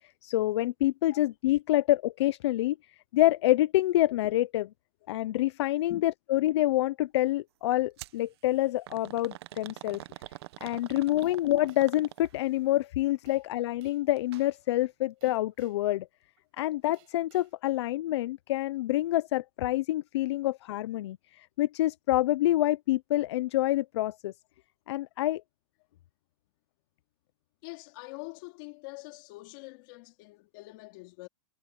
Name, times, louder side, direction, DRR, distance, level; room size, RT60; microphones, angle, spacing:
voice 1, 0.2-2.8 3.1-4.7 5.1-10.0 10.6-16.1 16.6-24.3 24.9-25.4, left 15 dB, 60° left, 0.5 m, -27 dB
sound 1, 8.0-8.2 8.9-12.5 14.2-14.5 14.8-14.9 15.8-15.9, right 15 dB, 55° right, 1.1 m, -45 dB
sound 2, 11.2-12.1 13.3-13.5 13.8-14.1 15.2-15.9 16.9-17.6, right 25 dB, 35° right, 5.5 m, -63 dB
voice 2, 27.6-31.3, left 25 dB, 40° left, 4.0 m, -45 dB
supercardioid pair, 170°, 16 cm